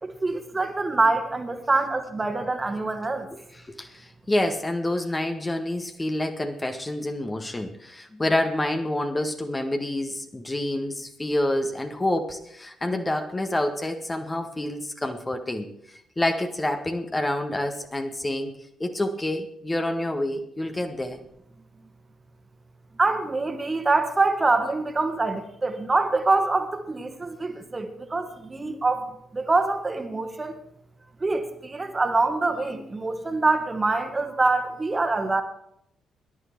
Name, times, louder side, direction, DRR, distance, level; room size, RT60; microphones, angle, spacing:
voice 1, 0.0-3.3 23.0-30.6 31.2-35.4, right 3 dB, 25° right, 7 dB, 1.9 m, -25 dB
voice 2, 3.5-15.7 16.2-18.5 18.8-21.2, left 1 dB, 20° left, 5 dB, 1.7 m, -28 dB
18.0 x 11.5 x 4.6 m, 0.75 s
figure-of-eight pair, 45°, 0 cm